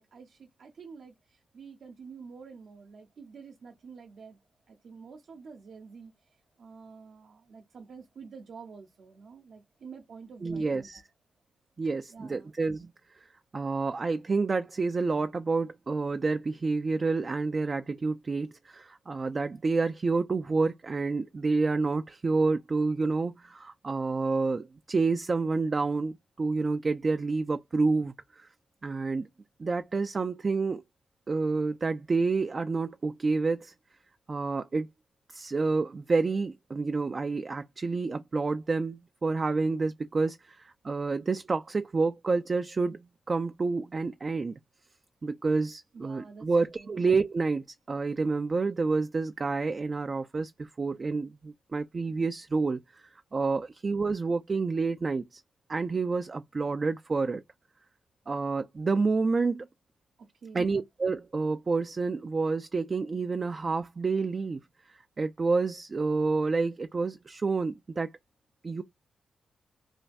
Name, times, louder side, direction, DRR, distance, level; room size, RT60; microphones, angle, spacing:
voice 1, 0.0-4.4 4.7-6.1 6.6-10.9 12.1-12.5 45.9-46.5 46.8-47.0 60.2-60.8, right 5 dB, 65° right, 0.7 m, -48 dB
voice 2, 10.4-11.0 11.8-12.9 13.2-13.3 13.5-28.5 28.8-29.3 29.6-30.8 31.3-33.7 34.3-34.9 35.3-44.6 45.2-52.8 53.3-55.4 55.7-57.4 58.3-59.7 60.5-64.6 64.9-68.1 68.6-68.8, right 4 dB, 40° right, 0.3 m, -29 dB
3.2 x 2.2 x 2.5 m
cardioid pair, 80°, 0 cm